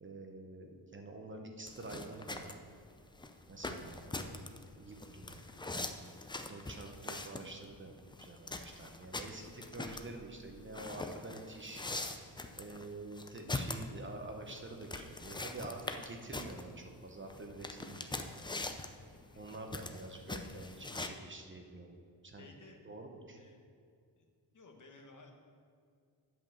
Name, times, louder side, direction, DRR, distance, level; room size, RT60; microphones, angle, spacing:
voice 1, 0.0-2.5 3.5-5.5 6.5-11.8 12.5-18.3 19.4-22.0 22.2-22.5 22.8-23.4, right 2 dB, 30° right, 3 dB, 0.8 m, -48 dB
sound 1, 1.7-21.1, left 2 dB, 10° left, 0.4 m, -43 dB
voice 2, 22.4-22.8 23.4-23.6 24.2-24.3 24.5-25.3, left 3 dB, 45° left, 2 dB, 1.2 m, -56 dB
8.9 x 5.3 x 7.3 m, 2.2 s
wide cardioid pair, 140°, 41 cm